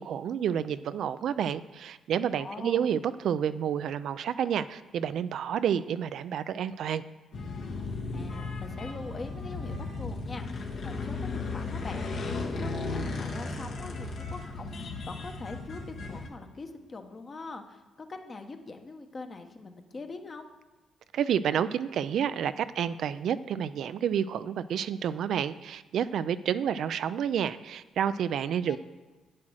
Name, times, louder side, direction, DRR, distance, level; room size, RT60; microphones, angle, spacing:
voice 1, 0.0-7.0 21.1-28.8, right 8 dB, 70° right, 13 dB, 0.4 m, -29 dB
voice 2, 2.4-2.9 8.1-17.8 18.1-20.5 28.6-28.8, left 3 dB, 35° left, 5 dB, 1.1 m, -43 dB
sound 1, 7.3-16.3, left 3 dB, 65° left, 1.6 m, -35 dB
8.7 x 7.4 x 6.3 m, 1.2 s
cardioid pair, 90°, 0 cm